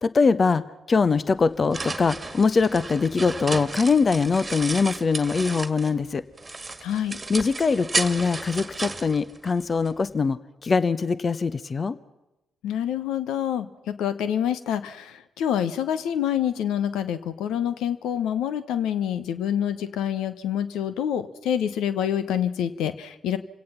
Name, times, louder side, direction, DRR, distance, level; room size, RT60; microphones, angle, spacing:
voice 1, 0.0-6.2 7.3-12.0, left 4 dB, 40° left, 16 dB, 0.8 m, -22 dB
sound 1, 1.3-6.0 6.4-9.9, right 3 dB, 25° right, 1.8 m, -33 dB
voice 2, 6.8-7.2 12.6-23.4, left 9 dB, 70° left, 12 dB, 1.0 m, -27 dB
27.5 x 17.5 x 5.8 m, 0.97 s
hypercardioid pair, 45°, 0 cm